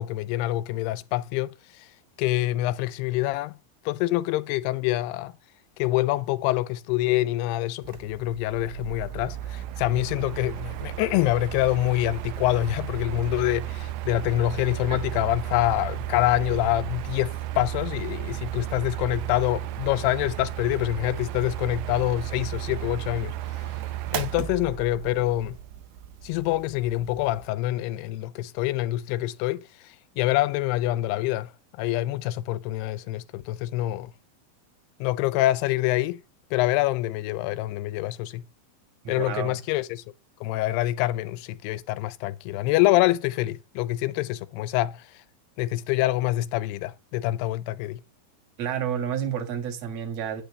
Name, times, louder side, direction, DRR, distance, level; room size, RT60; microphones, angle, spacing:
voice 1, 0.0-1.9 2.2-3.6 3.9-5.3 5.8-23.8 24.1-25.6 26.2-34.1 35.0-36.2 36.5-38.4 39.1-40.0 40.4-45.2 45.6-48.0, left 16 dB, 90° left, 2.7 m, -26 dB
Mechanical fan, 7.8-27.5, right 13 dB, 85° right, 2.0 m, -34 dB
voice 2, 39.0-39.6 48.6-50.4, right 8 dB, 50° right, 2.3 m, -30 dB
10.0 x 8.5 x 3.2 m
omnidirectional pair, 4.6 m